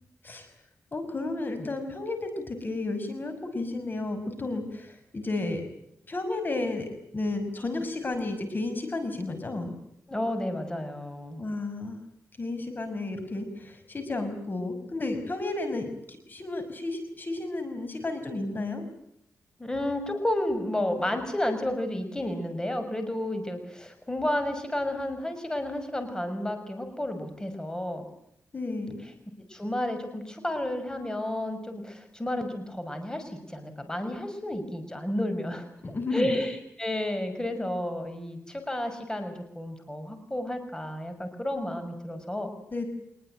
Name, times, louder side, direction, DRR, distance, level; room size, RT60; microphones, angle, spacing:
voice 1, 0.9-5.6 6.1-9.7 11.4-12.0 12.4-18.8 28.5-29.0 35.8-36.4 42.7-42.9, left 2 dB, 35° left, 8 dB, 5.7 m, -32 dB
voice 2, 10.1-11.4 19.6-28.0 29.5-35.7 36.1-42.5, left 1 dB, 15° left, 7 dB, 6.1 m, -31 dB
26.0 x 21.5 x 9.2 m, 0.75 s
cardioid pair, 85°, 5 cm